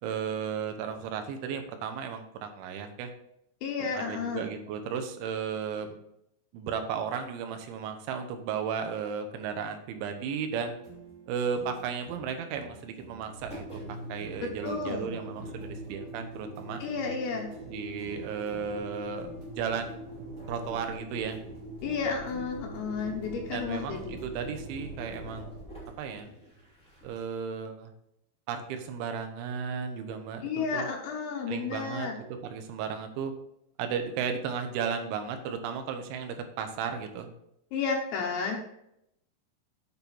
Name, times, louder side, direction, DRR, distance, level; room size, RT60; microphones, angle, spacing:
voice 1, 0.0-3.1 3.8-5.9 6.5-10.7 11.3-16.8 17.7-20.0 20.5-21.4 23.5-25.5 26.0-26.3 27.0-27.9 28.5-30.9 31.5-33.3 33.8-37.3, right 6 dB, 85° right, 6 dB, 3.3 m, -34 dB
voice 2, 3.6-4.5 14.6-15.1 16.8-17.5 21.8-24.2 30.4-32.2 37.7-38.6, left 5 dB, 80° left, 0 dB, 3.2 m, -32 dB
sound 1, 10.6-25.6, right 4 dB, 60° right, 4.3 m, -50 dB
Engine, 13.3-27.3, right 1 dB, 5° left, 1.1 m, -43 dB
8.8 x 5.4 x 4.5 m, 0.77 s
omnidirectional pair, 5.4 m